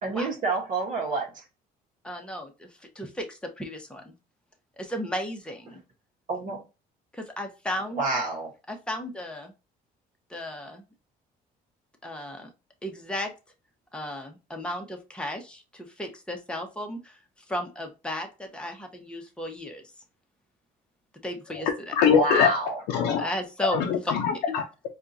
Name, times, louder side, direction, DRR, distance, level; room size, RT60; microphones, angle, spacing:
voice 1, 0.0-1.4 5.7-5.8 6.3-6.6 8.0-8.5 22.1-22.8, right 3 dB, 50° right, 1.1 m, -28 dB
voice 2, 2.0-2.7 2.9-4.1 4.8-5.8 7.1-8.0 8.7-9.5 10.3-10.8 12.0-12.5 12.8-13.3 13.9-17.2 17.5-19.8 21.2-21.9 23.2-23.8, equal, 5° left, 0.9 m, -34 dB
voice 3, 21.5-22.5 22.9-23.3 23.7-24.6, left 7 dB, 90° left, 0.6 m, -23 dB
4.4 x 2.4 x 2.6 m
cardioid pair, 110°, 17 cm